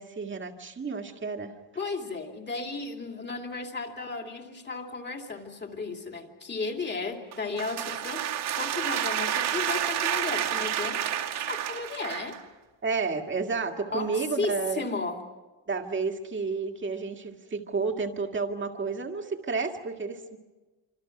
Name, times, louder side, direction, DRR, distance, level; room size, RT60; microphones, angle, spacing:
voice 1, 0.0-1.5 12.8-14.9 15.7-20.4, right 4 dB, 25° right, 4 dB, 2.0 m, -31 dB
voice 2, 1.8-8.3 8.6-11.1 11.4-12.4 13.9-15.2, left 3 dB, 25° left, 3 dB, 2.7 m, -34 dB
sound 1, 7.3-12.4, right 10 dB, 60° right, 2.4 m, -30 dB
27.5 x 26.5 x 6.0 m, 1.2 s
cardioid pair, 170°, 45 cm